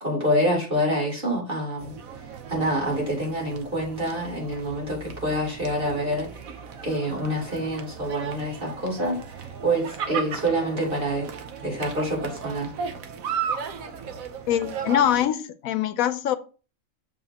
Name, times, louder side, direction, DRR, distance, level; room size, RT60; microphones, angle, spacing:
voice 1, 0.0-1.9 2.5-6.3 6.8-11.3 11.6-12.7, right 1 dB, 40° right, 3.6 m, -26 dB
sound 1, 1.8-15.2, right 6 dB, 80° right, 1.3 m, -36 dB
voice 2, 14.5-16.4, left 10 dB, 85° left, 1.1 m, -23 dB
8.0 x 6.8 x 2.9 m
omnidirectional pair, 1.4 m